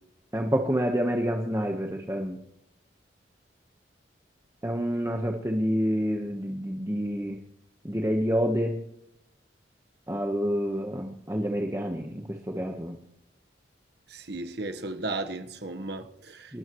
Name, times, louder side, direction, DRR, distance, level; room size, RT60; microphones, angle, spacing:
voice 1, 0.3-2.4 4.6-7.4 7.8-8.8 10.1-13.0 16.5-16.6, equal, 15° right, 1.2 m, -28 dB
voice 2, 14.1-16.6, right 2 dB, 60° right, 1.3 m, -35 dB
29.0 x 13.0 x 3.1 m
head